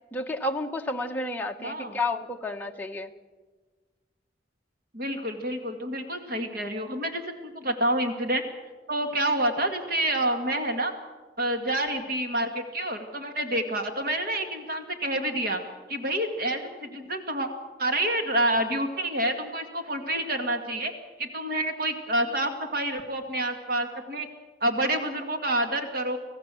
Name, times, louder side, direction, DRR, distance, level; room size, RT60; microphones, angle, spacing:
voice 1, 0.1-3.1, left 2 dB, 10° left, 2 dB, 1.0 m, -31 dB
voice 2, 1.6-2.0 4.9-8.4 8.9-10.9 11.4-15.6 15.9-17.5 17.8-20.9 21.2-24.3 24.6-26.2, right 1 dB, 55° right, 6 dB, 2.1 m, -28 dB
26.5 x 16.5 x 7.7 m, 1.4 s
head